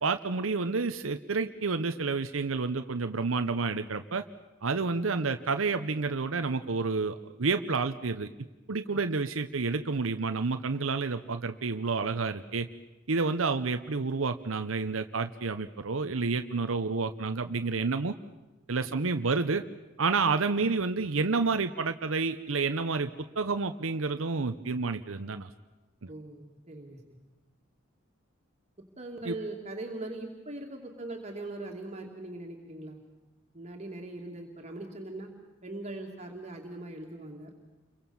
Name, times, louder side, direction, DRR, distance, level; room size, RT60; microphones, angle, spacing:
voice 1, 0.0-4.2 4.6-8.3 8.7-12.7 13.1-18.1 18.7-19.6 20.0-25.5 26.0-26.1 29.3-29.4, right 4 dB, 90° right, 8 dB, 0.9 m, -29 dB
voice 2, 18.9-19.3 26.1-27.2 29.0-33.0 33.5-35.3 35.6-37.5, right 2 dB, 35° right, 1 dB, 2.6 m, -41 dB
29.0 x 23.5 x 7.2 m, 1.1 s
head